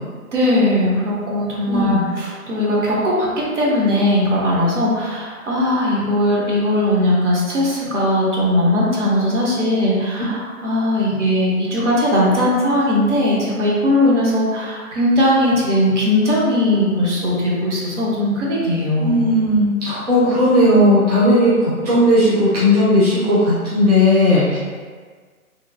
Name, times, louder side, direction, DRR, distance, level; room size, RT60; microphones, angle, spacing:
voice 1, 0.3-3.3 3.6-19.2, left 1 dB, 50° right, -5 dB, 0.9 m, -19 dB
voice 2, 1.7-2.0 19.0-24.6, left 1 dB, 25° right, -11 dB, 0.6 m, -15 dB
3.0 x 2.3 x 2.4 m, 1.5 s
figure-of-eight pair, 140°, 44 cm